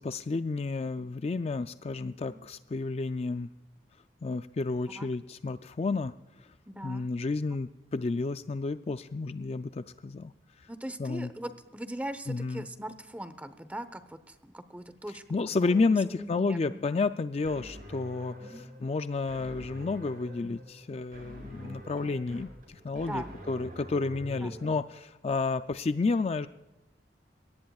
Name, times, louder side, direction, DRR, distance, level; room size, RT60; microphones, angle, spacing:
voice 1, 0.0-3.5 4.2-6.5 6.8-10.3 10.6-10.7 11.0-11.3 12.3-12.7 15.3-26.5, left 3 dB, 35° left, 11 dB, 0.4 m, -31 dB
voice 2, 6.7-7.1 10.7-15.2 15.6-16.8 18.4-18.6 21.6-21.8 23.0-23.3 24.4-24.6, right 1 dB, 10° right, 11 dB, 0.9 m, -40 dB
sound 1, 17.4-24.8, equal, 50° right, 4.8 m, -46 dB
22.5 x 18.0 x 2.4 m, 1.0 s
head